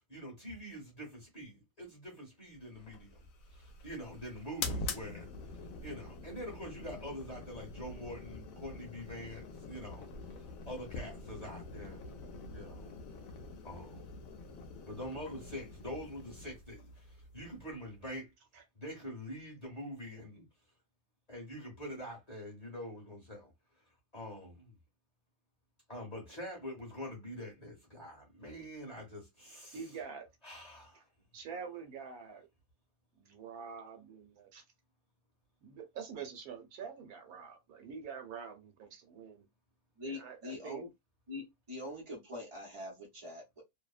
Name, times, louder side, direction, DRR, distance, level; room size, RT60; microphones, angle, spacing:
voice 1, 0.1-3.2 3.5-5.3 5.8-12.0 12.5-13.0 13.6-14.1 14.8-18.3 18.7-20.5 21.3-23.5 24.1-24.8 25.9-29.8 30.4-31.1, equal, 30° left, 0.9 m, -45 dB
sound 1, 2.8-18.1, left 3 dB, 70° left, 0.9 m, -45 dB
voice 2, 29.7-30.3 31.3-32.5 33.2-34.6 35.6-39.4 40.0-40.8, right 6 dB, 75° right, 1.2 m, -46 dB
voice 3, 40.0-40.9 41.3-43.6, left 2 dB, 40° right, 0.4 m, -44 dB
2.7 x 2.0 x 2.3 m
omnidirectional pair, 1.7 m